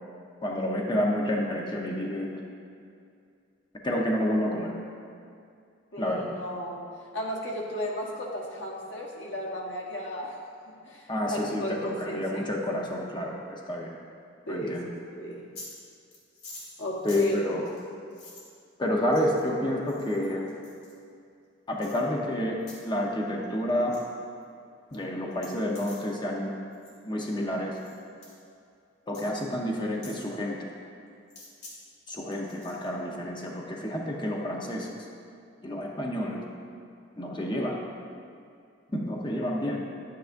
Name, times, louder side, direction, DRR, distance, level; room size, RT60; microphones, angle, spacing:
voice 1, 0.4-2.3 3.8-4.8 6.0-6.3 11.1-13.9 14.5-14.9 17.0-17.7 18.8-20.5 21.7-22.6 22.8-24.0 24.9-26.5 27.1-27.8 29.1-30.7 32.1-34.9 35.6-36.4 37.2-37.8 38.9-39.8, left 1 dB, 25° left, -2 dB, 0.8 m, -29 dB
voice 2, 5.9-6.8 7.1-10.4 10.8-12.4 14.5-15.5 16.8-17.4 37.4-37.7, equal, 90° left, -1 dB, 1.3 m, -35 dB
sound 1, 15.3-15.8 16.1-18.5 19.1-19.5 19.9-20.9 21.8-22.0 22.6-22.8 23.1-23.4 23.7-24.0 24.4-24.5 24.9-25.0 25.3-26.1 26.7-27.0 27.7-28.0 28.2-28.4 29.1-29.3 30.0-30.2 31.3-31.7 32.1-32.9, left 2 dB, 60° left, 2.2 m, -47 dB
10.0 x 9.4 x 2.6 m, 2.4 s
head